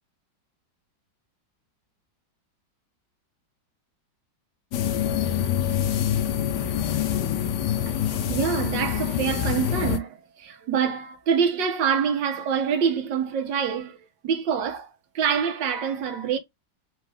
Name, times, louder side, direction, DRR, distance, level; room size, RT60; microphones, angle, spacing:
sound 1, 4.7-10.0, left 10 dB, 75° left, 1.3 m, -25 dB
voice 1, 7.8-14.0 14.2-16.4, right 7 dB, 85° right, 1.6 m, -26 dB
4.7 x 2.4 x 3.2 m
omnidirectional pair, 2.0 m